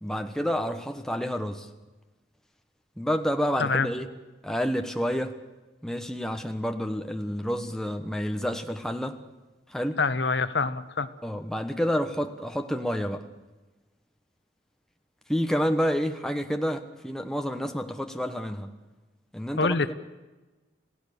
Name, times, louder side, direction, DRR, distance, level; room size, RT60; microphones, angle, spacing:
voice 1, 0.0-1.7 3.0-4.1 4.4-5.3 5.8-9.2 9.7-10.0 11.2-13.2 15.3-18.7 19.3-19.9, equal, 5° left, 5 dB, 1.2 m, -29 dB
voice 2, 10.0-11.1 19.6-19.9, left 4 dB, 70° left, 13 dB, 0.9 m, -25 dB
28.5 x 16.5 x 6.8 m, 1.2 s
head